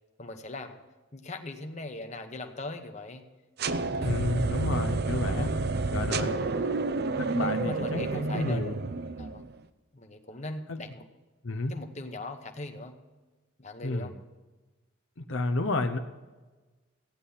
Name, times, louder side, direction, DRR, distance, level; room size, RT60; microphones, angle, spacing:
voice 1, 0.2-0.8 1.1-3.3 4.0-4.2 5.1-5.5 6.2-6.8 7.1-8.8 9.2-9.4 9.9-11.1 11.7-13.0 13.6-14.1, left 2 dB, 35° left, 5 dB, 1.1 m, -40 dB
sound 1, 3.6-9.5, right 3 dB, 50° right, 0.6 m, -30 dB
voice 2, 4.0-5.5 5.9-6.4 7.3-8.7 10.7-10.8 11.4-11.7 13.8-14.1 15.2-16.0, left 2 dB, 65° left, 6 dB, 0.8 m, -30 dB
15.0 x 10.0 x 5.7 m, 1.2 s
head